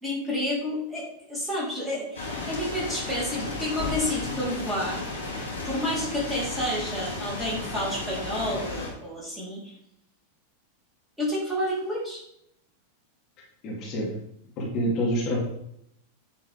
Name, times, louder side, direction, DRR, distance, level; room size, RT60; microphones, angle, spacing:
voice 1, 0.0-5.0 5.6-9.7 11.2-12.2, left 1 dB, 5° right, -6 dB, 4.0 m, -30 dB
sound 1, 2.2-8.9, left 3 dB, 75° left, 2.4 m, -34 dB
voice 2, 13.6-14.1 14.6-15.4, equal, 35° left, -4 dB, 3.1 m, -27 dB
9.7 x 7.1 x 3.6 m, 0.76 s
figure-of-eight pair, 90°, 0 cm